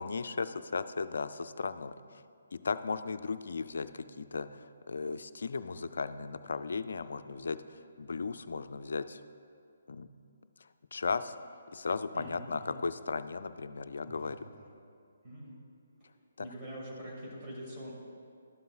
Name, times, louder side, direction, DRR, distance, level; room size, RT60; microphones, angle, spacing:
voice 1, 0.0-2.2 2.5-9.2 9.9-10.1 10.6-11.3 11.7-14.4, left 4 dB, 65° left, 12 dB, 0.3 m, -36 dB
voice 2, 12.1-12.8 14.1-14.7 15.2-15.6 16.0-17.9, equal, 25° right, -6 dB, 2.1 m, -45 dB
12.5 x 7.7 x 2.3 m, 2.3 s
figure-of-eight pair, 140°, 0 cm